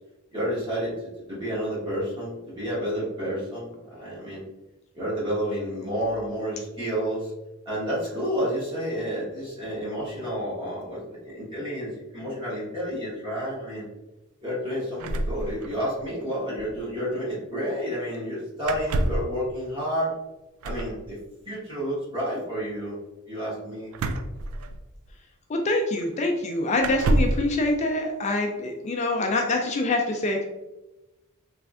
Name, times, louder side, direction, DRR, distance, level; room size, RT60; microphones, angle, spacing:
voice 1, 0.3-0.9 1.3-4.4 4.9-7.3 7.6-13.9 14.4-20.1 20.6-21.2 21.4-23.0 23.3-23.9, equal, 25° right, -9 dB, 1.3 m, -30 dB
sound 1, 15.0-16.1 16.3-16.4 16.6-16.8 18.6-19.3 20.6-21.0 23.9-25.1 26.0-26.1 26.8-27.5, right 2 dB, 85° right, 0.3 m, -27 dB
voice 2, 25.5-30.5, left 2 dB, 30° left, 2 dB, 0.3 m, -25 dB
3.4 x 3.1 x 2.4 m, 1.0 s
head